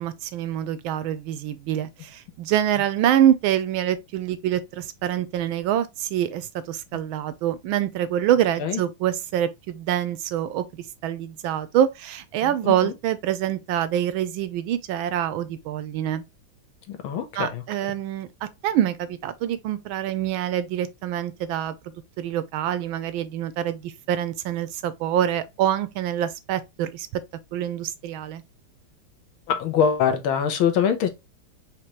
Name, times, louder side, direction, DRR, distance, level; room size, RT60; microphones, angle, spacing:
voice 1, 0.0-10.6 11.0-16.2 17.4-21.7 22.2-27.2 27.5-28.4, right 11 dB, 75° right, 1.3 m, -25 dB
voice 2, 12.4-12.9 16.9-17.6 29.5-31.1, left 7 dB, 75° left, 1.7 m, -24 dB
5.1 x 3.0 x 3.0 m
omnidirectional pair, 2.3 m